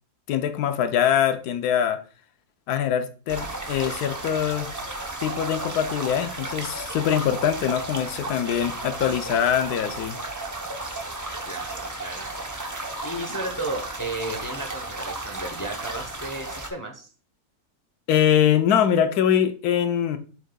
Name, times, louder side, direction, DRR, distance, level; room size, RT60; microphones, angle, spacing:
voice 1, 0.3-2.0 2.7-4.7 5.2-10.2 18.1-20.2, left 9 dB, 80° left, 8 dB, 1.2 m, -23 dB
sound 1, 3.3-16.7, right 2 dB, 25° right, 0.4 m, -34 dB
voice 2, 11.5-12.6 13.0-17.1, right 2 dB, 20° left, 3 dB, 0.6 m, -34 dB
7.5 x 6.6 x 2.3 m, 0.37 s
omnidirectional pair, 1.6 m